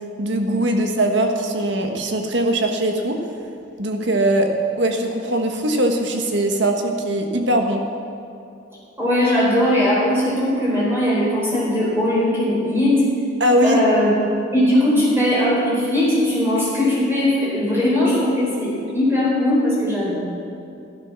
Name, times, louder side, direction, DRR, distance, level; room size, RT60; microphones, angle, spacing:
voice 1, 0.2-3.2 3.8-4.5 4.8-7.8 13.4-13.8, right 1 dB, 70° right, 4 dB, 1.5 m, -20 dB
voice 2, 9.0-13.0 13.6-14.1 14.5-20.2, left 1 dB, 15° right, -7 dB, 4.4 m, -19 dB
14.0 x 11.5 x 6.2 m, 2.5 s
head